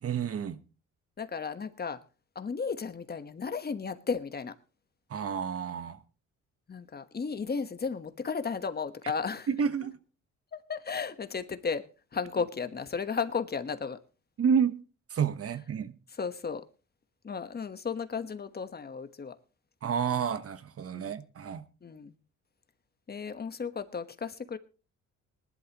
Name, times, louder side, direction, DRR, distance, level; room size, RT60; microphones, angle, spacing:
voice 1, 0.0-0.6 5.1-6.0 9.5-10.0 14.4-14.8 15.1-15.9 19.8-21.6, right 7 dB, 50° right, 1.2 m, -29 dB
voice 2, 1.2-2.0 2.3-4.5 6.7-9.5 10.7-11.8 12.1-14.0 16.2-16.6 17.2-19.3 20.9-21.1 21.8-22.1 23.1-24.6, left 5 dB, 30° left, 1.3 m, -34 dB
20.5 x 11.5 x 3.0 m
cardioid pair, 90°, 30 cm